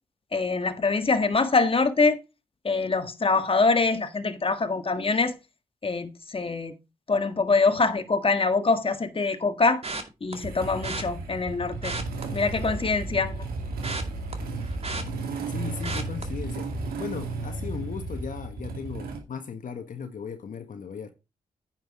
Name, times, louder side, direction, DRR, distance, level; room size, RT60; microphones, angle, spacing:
voice 1, 0.3-2.2 2.6-5.4 5.8-6.7 7.1-9.8 10.2-12.0 12.3-13.4, left 3 dB, 35° left, 1.6 m, -24 dB
sound 1, 9.8-10.3 10.8-11.0 11.7-13.0 13.3-15.5 15.8-16.2 16.7-17.0 17.3-17.4, right 3 dB, 40° right, 2.3 m, -35 dB
Motorcycle / Engine starting, 10.4-19.2, right 3 dB, 80° right, 2.4 m, -33 dB
voice 2, 15.5-21.1, left 6 dB, 60° left, 1.4 m, -37 dB
9.5 x 6.0 x 4.8 m
supercardioid pair, 40°, 15 cm